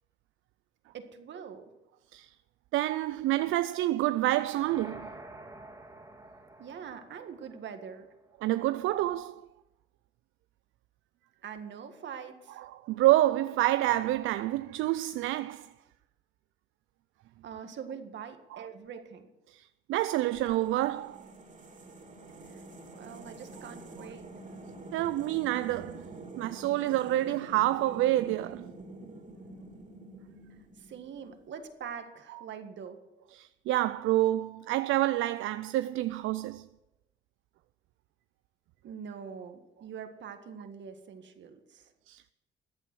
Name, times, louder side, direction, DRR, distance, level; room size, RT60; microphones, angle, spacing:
voice 1, 0.9-1.7 6.6-8.1 11.4-12.6 17.4-19.3 22.5-22.6 22.9-24.3 30.8-33.0 38.8-41.9, right 7 dB, 65° right, 1.8 m, -44 dB
voice 2, 2.7-5.1 8.4-9.5 12.6-15.7 18.5-18.6 19.5-21.3 24.9-26.1 26.4-28.7 33.3-36.7 42.1-42.3, right 15 dB, 85° right, 0.4 m, -28 dB
sound 1, 4.2-8.3, right 2 dB, 20° right, 2.5 m, -49 dB
sound 2, 20.3-31.4, right 2 dB, 40° right, 3.2 m, -48 dB
14.5 x 9.2 x 6.2 m
cardioid pair, 90°, 20 cm